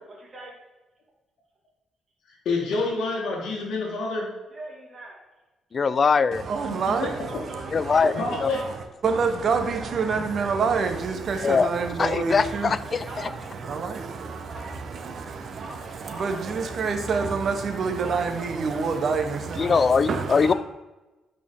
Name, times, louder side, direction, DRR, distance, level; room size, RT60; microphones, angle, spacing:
voice 1, 0.1-0.5 4.5-5.2 7.3-8.7 10.7-10.8 11.3-11.6 12.1-13.8 14.5-14.8 15.5-16.7 18.0-19.1 19.6-19.9 20.4-20.5, right 2 dB, 40° right, 2.1 m, -42 dB
voice 2, 2.3-4.3 7.0-7.4 8.1-8.6, left 3 dB, 70° left, 1.5 m, -28 dB
voice 3, 5.7-6.4 7.7-8.5 11.4-11.7 12.0-13.3 19.6-20.5, left 5 dB, 40° left, 0.3 m, -22 dB
voice 4, 6.5-7.3 7.5-7.9 9.0-12.7 13.6-19.8 20.1-20.4, right 5 dB, 55° right, 1.0 m, -27 dB
8.7 x 4.5 x 3.6 m
cardioid pair, 90°, 0 cm